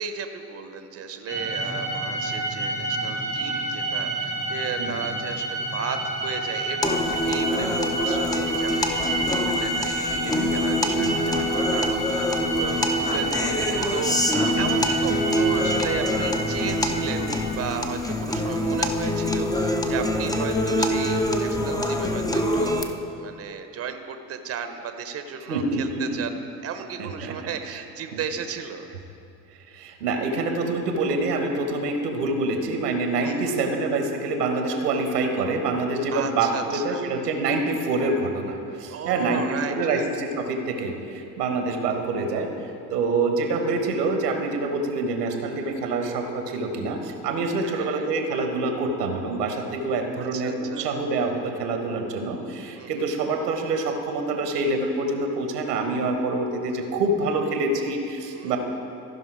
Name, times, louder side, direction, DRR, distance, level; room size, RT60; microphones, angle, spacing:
voice 1, 0.0-22.9 23.1-26.3 26.6-28.9 33.2-33.5 36.1-37.0 38.9-40.1 47.6-48.1 50.2-50.9 52.7-53.1 58.3-58.6, right 6 dB, 30° right, 8 dB, 0.8 m, -35 dB
sound 1, 1.3-17.5, right 2 dB, 70° left, 2.6 m, -29 dB
sound 2, 6.8-22.8, left 1 dB, 10° left, 0.6 m, -25 dB
voice 2, 25.5-26.2 27.0-27.3 29.7-42.5 42.9-58.6, right 3 dB, 80° right, 4 dB, 1.2 m, -26 dB
15.0 x 5.3 x 4.8 m, 2.7 s
hypercardioid pair, 70°, 46 cm